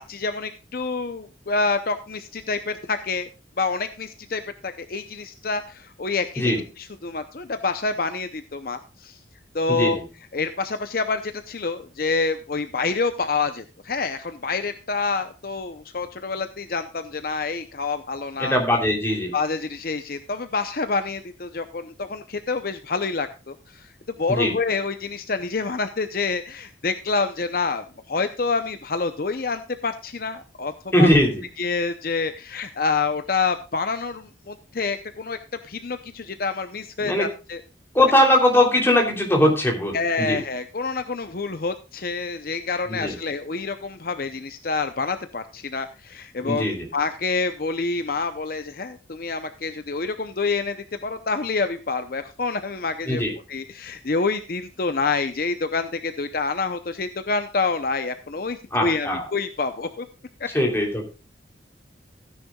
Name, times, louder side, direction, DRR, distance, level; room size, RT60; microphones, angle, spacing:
voice 1, 0.0-3.3 3.6-9.2 9.5-10.0 10.3-18.6 19.3-23.9 24.2-30.7 31.0-31.1 31.6-35.4 35.6-37.6 39.9-50.8 51.0-53.2 53.5-60.1 60.4-60.5, left 4 dB, 50° left, 9 dB, 0.7 m, -27 dB
voice 2, 9.7-10.0 18.4-19.3 24.3-24.5 30.9-31.4 37.0-37.3 37.9-40.4 42.9-43.2 46.4-46.9 53.1-53.3 58.7-59.2 60.5-61.1, left 1 dB, 15° left, 1 dB, 3.1 m, -20 dB
15.5 x 10.0 x 2.3 m, 0.32 s
head